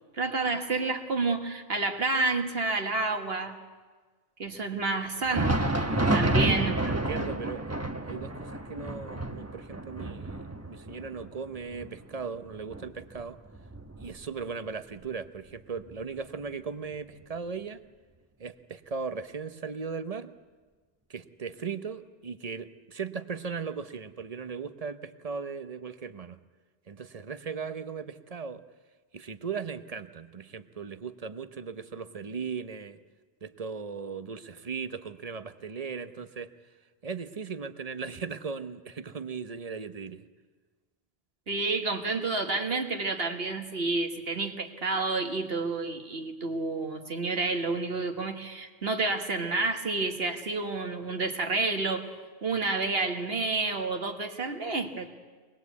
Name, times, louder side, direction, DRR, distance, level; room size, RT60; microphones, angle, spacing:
voice 1, 0.2-3.6 4.4-6.8 41.5-52.0 52.4-55.1, right 3 dB, 70° right, 4 dB, 1.9 m, -29 dB
Thunder, 5.1-14.6 14.9-15.1 15.8-15.9 16.9-17.0, right 1 dB, 15° right, 1.2 m, -30 dB
voice 2, 5.9-13.4 14.0-17.8 18.4-20.3 21.1-26.4 26.9-28.6 29.1-33.0 33.4-36.5 37.0-40.3, right 5 dB, 40° right, 11 dB, 0.9 m, -38 dB
24.0 x 20.0 x 8.3 m, 1.4 s
omnidirectional pair, 1.1 m